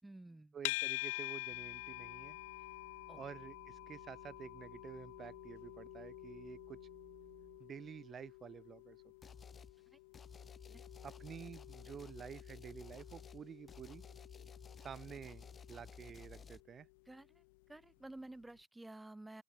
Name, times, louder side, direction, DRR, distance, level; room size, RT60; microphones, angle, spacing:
voice 1, 0.0-0.6 3.1-3.2 9.9-10.0 10.7-10.8 17.1-17.4 17.7-19.4, right 2 dB, 10° right, 5.2 m, -52 dB
voice 2, 0.5-2.4 3.2-6.8 7.6-9.0 11.0-14.0 14.8-16.9, right 8 dB, 35° right, 3.8 m, -50 dB
sound 1, 0.6-17.8, left 27 dB, 65° left, 1.0 m, -48 dB
sound 2, 1.5-8.0, right 18 dB, 55° right, 3.8 m, -63 dB
sound 3, 9.2-9.7 10.1-16.6, left 6 dB, 25° left, 5.8 m, -54 dB
open air
hypercardioid pair, 80°, 0 cm